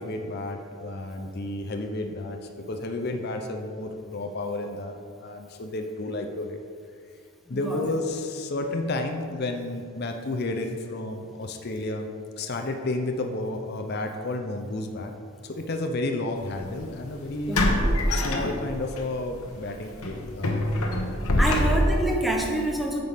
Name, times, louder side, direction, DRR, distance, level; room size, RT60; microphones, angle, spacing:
voice 1, 0.0-6.6 7.5-12.1 12.4-15.1 15.4-17.6 18.1-20.7 21.3-21.7, left 2 dB, 45° left, 4 dB, 0.5 m, -31 dB
sound 1, 16.4-16.6 17.5-19.0 19.4-19.6 20.0-22.1, left 1 dB, 80° left, 1.0 m, -24 dB
voice 2, 17.5-18.5 21.4-23.0, right 1 dB, ahead, 0 dB, 0.8 m, -28 dB
9.5 x 6.7 x 3.5 m, 2.2 s
head